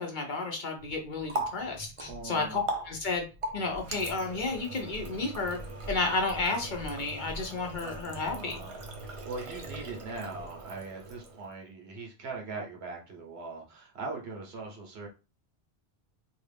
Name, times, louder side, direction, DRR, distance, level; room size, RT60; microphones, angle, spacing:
voice 1, 0.0-3.2 3.5-5.6 5.9-8.6, left 3 dB, 50° left, 3 dB, 0.9 m, -32 dB
Water tap faucet, 0.8-11.6, right 2 dB, 40° right, 0.5 m, -40 dB
voice 2, 2.1-2.6 8.2-15.1, right 3 dB, 80° right, 1 dB, 1.2 m, -41 dB
3.1 x 2.4 x 3.4 m, 0.30 s
omnidirectional pair, 1.1 m